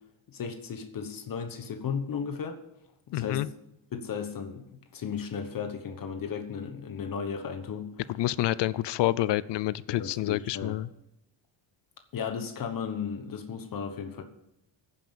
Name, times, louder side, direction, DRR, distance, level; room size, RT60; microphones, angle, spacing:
voice 1, 0.3-2.6 3.1-3.5 3.9-4.6 4.9-7.9 9.9-10.7 12.1-14.2, left 6 dB, 45° left, 5 dB, 1.2 m, -35 dB
voice 2, 3.1-3.5 8.2-10.9, left 15 dB, 65° left, 18 dB, 0.5 m, -28 dB
15.0 x 5.6 x 7.1 m, 0.86 s
cardioid pair, 120°, 46 cm